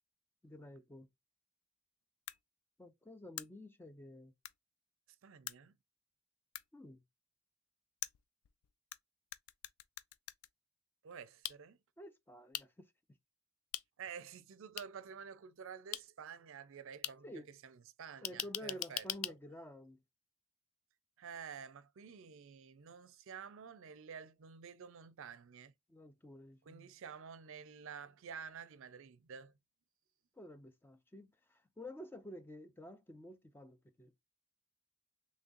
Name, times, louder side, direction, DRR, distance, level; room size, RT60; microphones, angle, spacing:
voice 1, 0.4-1.1 2.8-4.3 6.7-7.0 12.0-12.9 17.2-17.5 18.2-20.0 25.9-26.9 30.3-34.2, equal, 10° left, 0.4 m, -51 dB
sound 1, 2.3-2.4 3.4-3.5 4.4-4.5 5.5-5.6 6.5-6.6 8.0-9.0 9.3-10.5 11.4-11.6 12.5-12.6 13.7-13.8 14.8-14.9 15.9-16.0 17.0-17.1 18.2-19.3, left 13 dB, 80° left, 0.3 m, -41 dB
voice 2, 5.2-5.7 11.0-11.8 14.0-19.1 21.2-25.7 26.7-29.5, right 6 dB, 65° right, 0.5 m, -50 dB
3.8 x 3.1 x 2.5 m
head